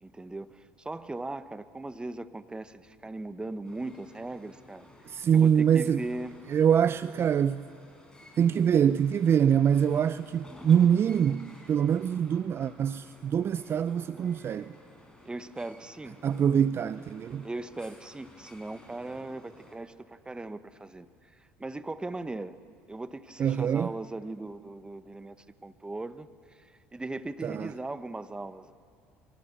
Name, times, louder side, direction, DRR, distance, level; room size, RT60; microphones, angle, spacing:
voice 1, 0.0-4.9 5.3-6.4 15.2-16.2 17.4-21.1 21.3-22.6 22.9-28.7, right 2 dB, 15° right, 1.1 m, -39 dB
sound 1, 3.6-19.8, left 1 dB, 10° left, 6.2 m, -54 dB
voice 2, 5.1-6.0 6.5-7.7 8.4-14.7 16.2-17.5 23.4-23.9 27.4-27.7, right 8 dB, 40° right, 0.5 m, -24 dB
27.0 x 25.0 x 6.9 m
hypercardioid pair, 65°, 6 cm